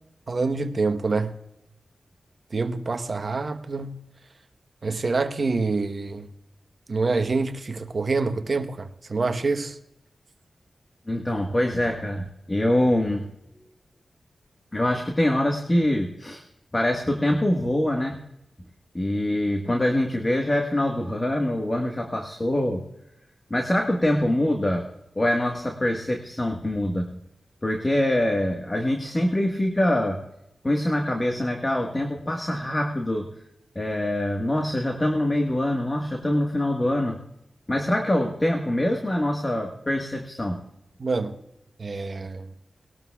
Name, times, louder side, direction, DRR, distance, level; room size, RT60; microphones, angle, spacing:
voice 1, 0.3-1.3 2.5-4.0 4.8-6.3 6.9-9.8 41.0-41.4 41.8-42.5, right 3 dB, 55° right, 1.0 m, -26 dB
voice 2, 11.1-13.3 14.7-16.4 16.7-18.2 18.9-22.8 23.5-24.9 25.1-27.2 27.6-30.2 30.6-33.3 33.7-37.2 37.7-40.6, left 1 dB, 25° left, 1.4 m, -24 dB
20.5 x 12.5 x 2.3 m
cardioid pair, 65°, 0 cm